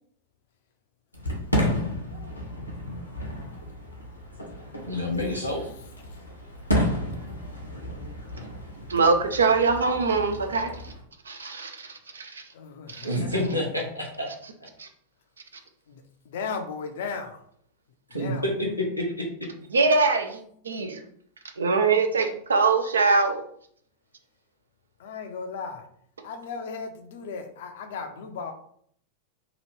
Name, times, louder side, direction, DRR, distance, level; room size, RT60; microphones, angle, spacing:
Fireworks, 1.1-11.0, equal, 85° left, 0.8 m, -32 dB
voice 1, 4.9-5.7 13.0-14.3 18.1-18.5 18.8-19.3, left 1 dB, 90° right, -1 dB, 0.8 m, -28 dB
voice 2, 8.9-10.9 11.2-12.5 12.9-13.1 14.8-14.9 19.7-21.0 21.6-23.4, right 4 dB, 70° right, 6 dB, 0.4 m, -23 dB
voice 3, 12.5-13.5 15.9-17.4 18.1-18.7 25.0-25.9 26.2-28.5, left 5 dB, 55° left, 6 dB, 0.5 m, -36 dB
2.9 x 2.4 x 3.2 m, 0.64 s
figure-of-eight pair, 90°, 0 cm